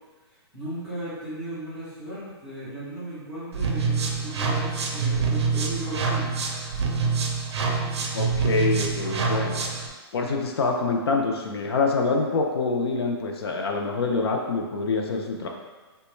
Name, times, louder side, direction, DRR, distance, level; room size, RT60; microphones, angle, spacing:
voice 1, 0.5-6.4, right 1 dB, 5° right, -12 dB, 0.4 m, -36 dB
sound 1, 3.5-9.9, right 4 dB, 85° right, 0.5 m, -26 dB
voice 2, 8.1-9.6 10.1-15.5, left 4 dB, 70° left, 1 dB, 0.5 m, -25 dB
3.0 x 2.2 x 3.0 m, 1.3 s
hypercardioid pair, 175°, 14 cm